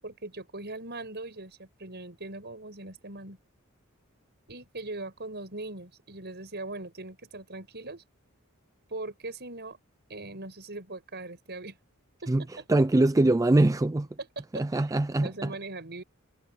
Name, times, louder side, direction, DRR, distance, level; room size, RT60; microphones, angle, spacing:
voice 1, 0.0-3.4 4.5-8.0 8.9-9.8 10.1-11.8 12.2-12.7 14.2-14.8 15.1-16.0, right 2 dB, 50° right, 7.1 m, -40 dB
voice 2, 12.7-14.1 14.5-15.5, right 2 dB, 15° right, 0.4 m, -23 dB
head